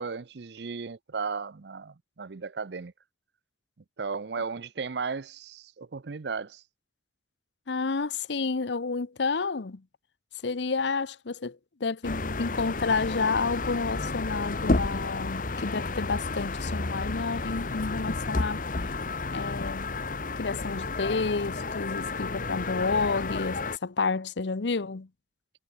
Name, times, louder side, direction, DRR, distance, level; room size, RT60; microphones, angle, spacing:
voice 1, 0.0-2.9 4.0-6.6, right 5 dB, 65° right, 0.6 m, -35 dB
voice 2, 7.7-9.8 10.4-18.6 19.3-19.9 20.3-25.1, left 4 dB, 75° left, 0.8 m, -30 dB
sound 1, 12.0-23.8, left 3 dB, 50° left, 1.1 m, -31 dB
head